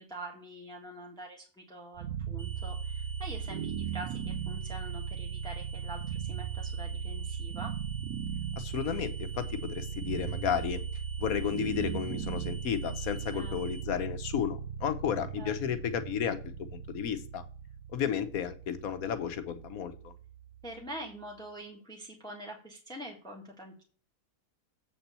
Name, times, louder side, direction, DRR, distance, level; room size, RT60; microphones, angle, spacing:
voice 1, 0.0-7.7 13.3-13.6 15.4-15.5 20.6-23.8, right 1 dB, 5° left, 0 dB, 1.6 m, -45 dB
sound 1, 2.0-21.0, right 8 dB, 85° right, 1.3 m, -38 dB
sound 2, 2.4-13.8, right 4 dB, 10° right, 1.7 m, -50 dB
voice 2, 8.6-10.8 11.2-16.4 16.7-17.4 17.9-20.1, left 8 dB, 70° left, 9 dB, 1.3 m, -33 dB
7.7 x 4.3 x 6.8 m, 0.41 s
omnidirectional pair, 1.6 m